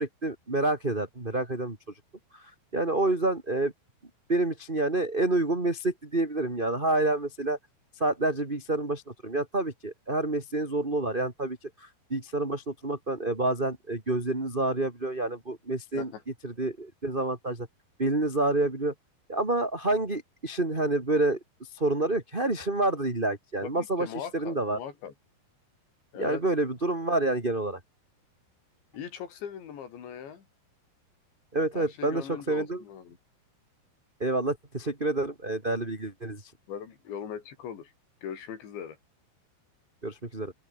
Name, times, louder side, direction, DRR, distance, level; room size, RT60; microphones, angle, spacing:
voice 1, 0.0-1.8 2.3-3.7 4.3-7.6 8.0-16.1 16.4-17.7 18.0-18.9 19.3-21.4 21.7-24.8 26.2-27.8 31.5-32.8 34.2-36.4 40.0-40.5, right 2 dB, 15° right, 2.7 m, -28 dB
voice 2, 23.6-25.1 26.1-26.4 28.9-30.5 31.7-33.2 36.7-37.9 38.2-39.0, left 8 dB, 85° left, 5.9 m, -40 dB
open air
omnidirectional pair, 5.0 m